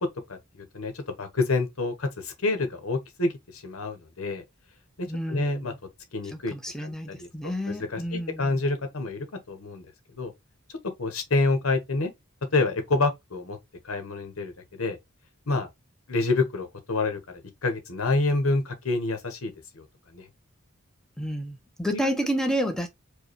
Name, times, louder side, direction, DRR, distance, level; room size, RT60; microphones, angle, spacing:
voice 1, 0.3-4.4 5.0-5.7 6.1-7.3 7.7-9.8 10.2-10.3 11.0-12.1 12.5-13.6 13.8-15.0 15.5-15.7 16.1-19.9 20.1-20.3 21.9-22.1, left 3 dB, 85° left, 1.1 m, -28 dB
voice 2, 5.1-5.8 6.3-8.6 21.2-22.9, equal, 5° left, 0.7 m, -30 dB
4.7 x 2.3 x 2.9 m
head